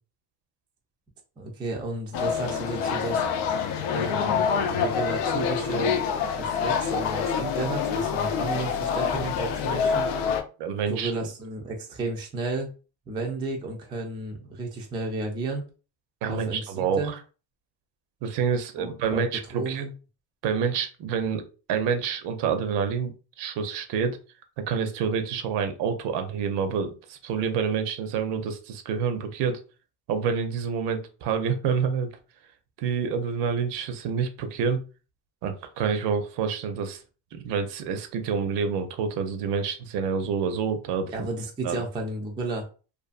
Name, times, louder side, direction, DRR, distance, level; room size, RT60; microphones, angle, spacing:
voice 1, 1.4-3.2 3.9-4.4 4.7-6.0 6.3-10.1 10.9-12.7 13.1-15.6 16.3-17.1 18.8-19.2 19.5-19.9 41.1-42.7, right 2 dB, 10° right, 0 dB, 0.3 m, -32 dB
sound 1, 2.1-10.4, left 6 dB, 85° left, 0.6 m, -26 dB
voice 2, 10.6-11.1 16.2-17.0 18.2-19.8 20.4-21.4 21.7-24.2 24.6-29.6 30.1-32.1 32.8-34.8 35.4-37.0 37.3-41.3 41.6-41.8, right 6 dB, 60° right, 7 dB, 0.6 m, -27 dB
2.5 x 2.4 x 2.4 m, 0.35 s
cardioid pair, 125°, 46 cm